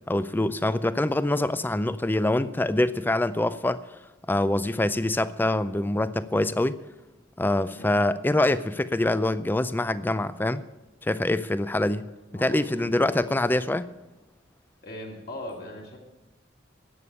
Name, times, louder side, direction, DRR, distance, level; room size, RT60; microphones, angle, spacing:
voice 1, 0.1-3.8 4.3-6.8 7.4-10.6 11.0-12.1 12.3-13.9, left 1 dB, 10° left, 0.4 m, -25 dB
voice 2, 12.3-13.0 14.8-16.0, left 1 dB, 55° left, 2.7 m, -39 dB
11.0 x 8.5 x 8.6 m
head